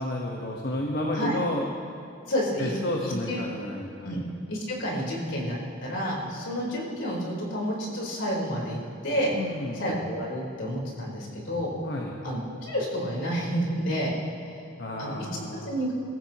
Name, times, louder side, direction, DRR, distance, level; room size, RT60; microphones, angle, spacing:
voice 1, 0.0-1.6 2.6-4.2 9.4-10.0 11.8-12.1 14.8-15.8, left 1 dB, 60° left, -1 dB, 1.3 m, -31 dB
voice 2, 2.3-2.7 3.0-3.4 4.0-4.2 4.5-9.3 9.7-11.7 12.2-14.1 14.4-14.6 15.0-15.1 15.6-15.9, equal, 75° left, -3 dB, 4.3 m, -30 dB
24.0 x 14.5 x 3.1 m, 2.7 s
head